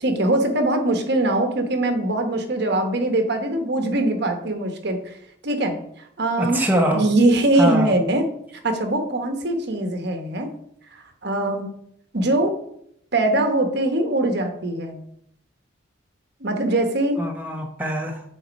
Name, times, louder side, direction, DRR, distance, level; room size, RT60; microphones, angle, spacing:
voice 1, 0.0-5.1 5.4-5.8 6.2-6.6 6.9-8.2 8.6-10.5 10.9-11.7 12.1-12.5 13.1-15.0 16.4-17.2, right 2 dB, 60° right, 5 dB, 1.1 m, -22 dB
voice 2, 6.4-7.1 7.6-7.9 17.2-18.2, equal, 10° right, 1 dB, 0.8 m, -23 dB
7.7 x 4.2 x 5.2 m, 0.72 s
head